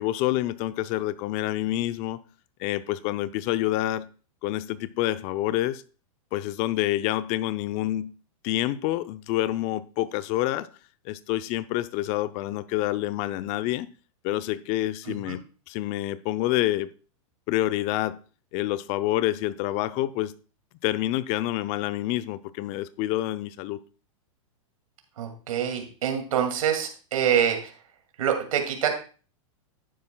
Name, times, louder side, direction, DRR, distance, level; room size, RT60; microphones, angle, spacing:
voice 1, 0.0-2.2 2.6-4.1 4.4-5.8 6.3-8.1 8.4-10.7 11.1-13.9 14.2-15.4 15.7-16.9 17.5-18.2 18.5-20.3 20.8-23.8, left 15 dB, 40° left, 0.6 m, -27 dB
voice 2, 25.2-27.7 28.2-28.9, right 8 dB, 80° right, 2.5 m, -26 dB
11.5 x 9.6 x 2.3 m
hypercardioid pair, 130°, 17 cm